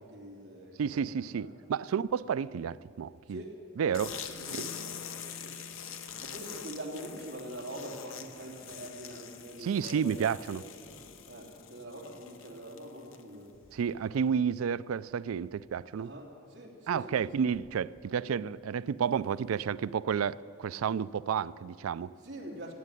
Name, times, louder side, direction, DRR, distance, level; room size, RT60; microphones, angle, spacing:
voice 1, 0.0-1.6 1.9-2.1 3.3-3.6 3.9-5.0 5.4-5.5 6.2-10.4 11.3-13.5 16.0-17.5 22.2-22.7, right 1 dB, 60° right, 3.0 m, -44 dB
voice 2, 0.8-3.4 3.8-4.1 9.6-10.6 13.7-16.1 16.9-22.1, right 7 dB, 90° right, 0.4 m, -31 dB
sound 1, 3.9-13.4, left 7 dB, 70° left, 1.0 m, -44 dB
Bass guitar, 4.2-10.3, left 2 dB, 50° left, 2.6 m, -55 dB
17.0 x 8.3 x 9.7 m
head